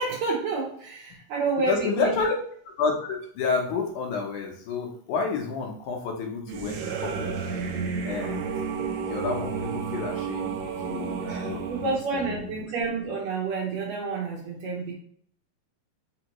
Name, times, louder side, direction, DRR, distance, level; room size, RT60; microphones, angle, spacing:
voice 1, 0.0-2.1 11.2-14.9, right 4 dB, 70° right, -2 dB, 1.8 m, -29 dB
voice 2, 1.7-2.4 2.8-7.3 8.1-8.5 9.0-12.6, left 4 dB, 75° left, 1 dB, 2.1 m, -30 dB
sound 1, 6.5-12.0, right 6 dB, 85° right, 1.4 m, -31 dB
5.1 x 2.7 x 2.9 m, 0.63 s
omnidirectional pair, 3.6 m